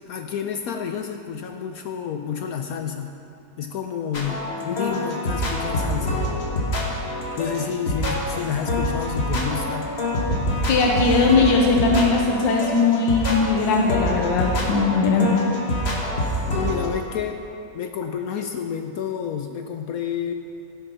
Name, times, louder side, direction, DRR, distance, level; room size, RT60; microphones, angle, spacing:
voice 1, 0.1-3.1 3.6-6.3 7.4-9.9 16.5-17.4 17.7-20.3, left 7 dB, 70° left, 5 dB, 0.9 m, -29 dB
sound 1, 4.1-16.9, left 1 dB, 40° left, 1.5 m, -26 dB
voice 2, 10.7-15.5, left 4 dB, 85° left, 0 dB, 1.6 m, -19 dB
16.0 x 6.4 x 5.5 m, 2.6 s
omnidirectional pair, 1.9 m